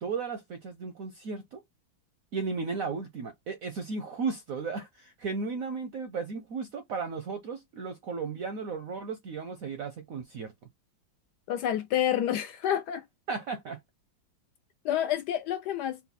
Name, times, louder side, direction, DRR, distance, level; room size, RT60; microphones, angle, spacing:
voice 1, 0.0-1.6 2.3-10.5 13.3-13.8, right 4 dB, 70° right, 0.8 m, -35 dB
voice 2, 11.5-13.0 14.8-16.0, left 10 dB, 70° left, 1.0 m, -28 dB
4.2 x 2.1 x 4.0 m
omnidirectional pair, 2.1 m